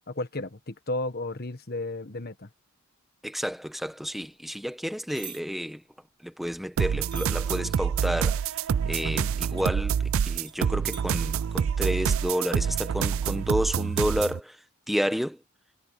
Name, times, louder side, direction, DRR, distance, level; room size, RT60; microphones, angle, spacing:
voice 1, 0.1-2.5, left 2 dB, 45° left, 1.5 m, -33 dB
voice 2, 3.2-5.8 6.2-8.4 8.9-14.6 14.9-15.4, equal, ahead, 1.4 m, -30 dB
sound 1, 5.1-5.4 7.1-7.4 9.6-9.7 10.5-10.6 10.9-11.1, right 7 dB, 20° right, 4.6 m, -41 dB
sound 2, 6.8-14.4, right 7 dB, 70° right, 0.4 m, -27 dB
head